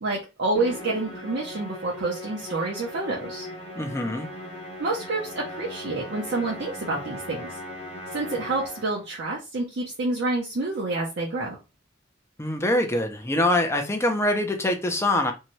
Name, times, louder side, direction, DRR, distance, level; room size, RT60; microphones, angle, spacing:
voice 1, 0.0-3.5 4.8-7.5 8.1-11.6, right 2 dB, 60° right, 0.6 m, -28 dB
Musical instrument, 0.5-9.1, left 1 dB, 35° left, 1.0 m, -39 dB
voice 2, 3.8-4.3 12.4-15.3, left 1 dB, 15° left, 0.5 m, -24 dB
2.7 x 2.2 x 3.0 m
head